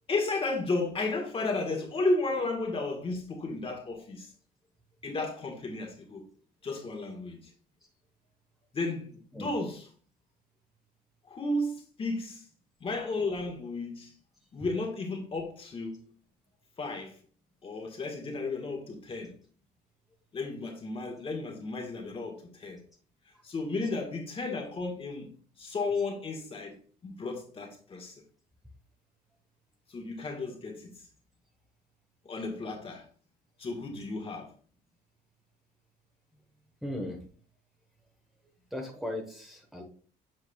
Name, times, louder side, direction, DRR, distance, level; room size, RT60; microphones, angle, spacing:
voice 1, 0.1-4.3 5.0-6.3 6.6-7.5 8.7-9.9 11.2-12.4 12.8-14.1 14.5-16.1 16.8-17.2 17.6-19.4 20.3-22.8 23.4-25.3 25.6-26.8 27.0-28.2 29.9-30.9 32.2-33.1 33.6-34.5, left 3 dB, 35° left, 1.6 m, -33 dB
voice 2, 36.8-37.2 38.7-39.8, left 1 dB, ahead, 1.3 m, -37 dB
7.7 x 5.2 x 2.3 m
cardioid pair, 110°, 17 cm